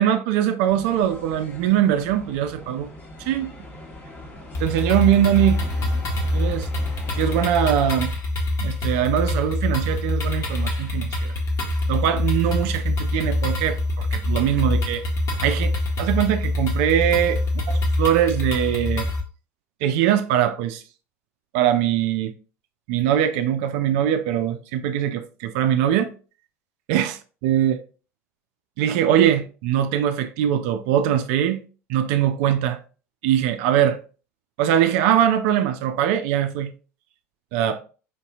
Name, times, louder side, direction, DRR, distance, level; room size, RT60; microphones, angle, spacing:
voice 1, 0.0-2.9 3.2-3.5 4.6-5.6 6.3-6.7 7.2-8.1 8.6-11.3 11.9-15.0 15.4-17.4 18.0-19.1 19.8-20.8 21.5-22.3 22.9-26.1 26.9-27.2 27.4-27.8 28.8-31.6 31.9-32.8 33.2-34.0 34.6-36.7 37.5-37.8, right 10 dB, 50° right, 0.4 m, -21 dB
sound 1, 0.7-7.5, left 1 dB, 20° left, 1.0 m, -41 dB
sound 2, 4.6-19.2, left 1 dB, 40° left, 1.2 m, -25 dB
5.1 x 2.7 x 2.5 m
figure-of-eight pair, 75°, 8 cm